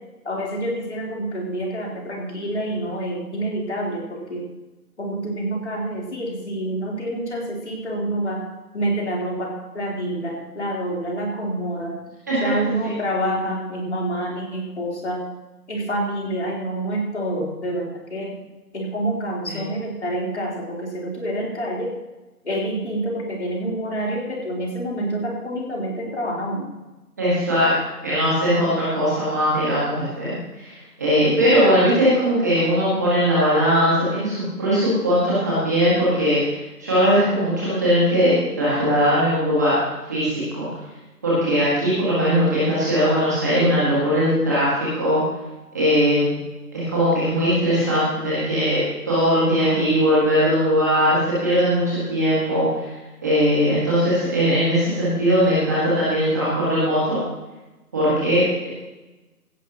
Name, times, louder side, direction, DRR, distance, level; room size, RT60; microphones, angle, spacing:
voice 1, 0.2-4.5 5.0-8.4 8.7-12.0 12.4-15.2 15.7-18.4 18.7-21.9 22.4-26.7, right 1 dB, 45° left, -3 dB, 4.0 m, -27 dB
voice 2, 27.2-27.7 28.0-36.4 36.8-40.7 41.2-45.2 45.7-46.4 46.7-52.9 53.2-57.2 57.9-58.7, equal, 10° right, -10 dB, 1.9 m, -20 dB
17.5 x 11.0 x 3.0 m, 1.1 s
figure-of-eight pair, 170°, 47 cm